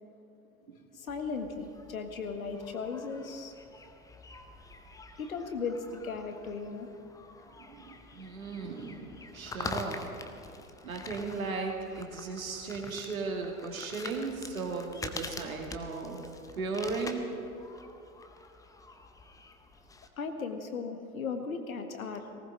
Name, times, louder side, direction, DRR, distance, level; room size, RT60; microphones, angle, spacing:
voice 1, 0.9-3.5 5.2-6.9 20.2-22.3, left 5 dB, 70° left, 6 dB, 1.8 m, -36 dB
sound 1, 1.1-20.1, left 3 dB, 10° left, 0.8 m, -46 dB
voice 2, 7.7-10.2 10.8-16.2 16.5-17.3, right 4 dB, 70° right, 2 dB, 2.5 m, -36 dB
19.0 x 18.5 x 4.0 m, 2.8 s
figure-of-eight pair, 90°, 43 cm